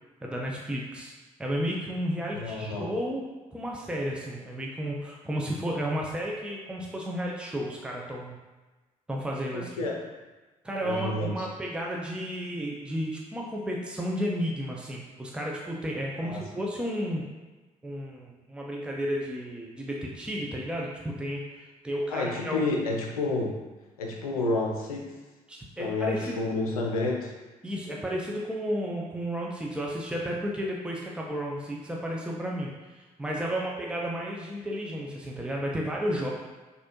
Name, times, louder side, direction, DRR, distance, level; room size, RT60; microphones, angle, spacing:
voice 1, 0.2-1.1 1.4-3.2 3.5-8.4 9.1-9.7 10.6-17.2 17.8-22.6 25.5-26.4 27.6-36.3, equal, 5° right, -2 dB, 0.8 m, -32 dB
voice 2, 2.3-2.9 9.5-10.0 10.8-11.5 16.2-16.4 22.1-23.6 24.0-25.1 25.8-27.3, left 2 dB, 80° left, 0 dB, 0.6 m, -30 dB
6.2 x 2.8 x 3.0 m, 1.2 s
figure-of-eight pair, 45°, 18 cm